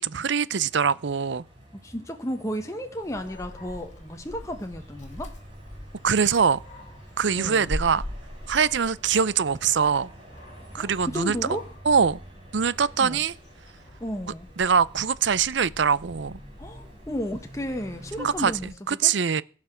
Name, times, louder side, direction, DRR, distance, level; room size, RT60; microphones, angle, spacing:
voice 1, 0.0-1.4 6.0-6.6 7.2-8.1 8.5-10.1 10.7-11.4 11.9-12.2 12.5-13.3 14.6-16.4 18.2-18.5 18.9-19.4, right 6 dB, 65° right, 0.6 m, -23 dB
sound 1, 0.6-18.4, right 1 dB, 25° right, 6.2 m, -49 dB
voice 2, 1.8-5.3 7.3-7.7 10.8-11.7 13.0-13.2 14.0-14.5 16.6-18.7 19.0-19.1, equal, 15° left, 1.2 m, -33 dB
Dog, 3.0-18.7, left 1 dB, 40° left, 2.8 m, -42 dB
16.5 x 6.0 x 8.0 m
head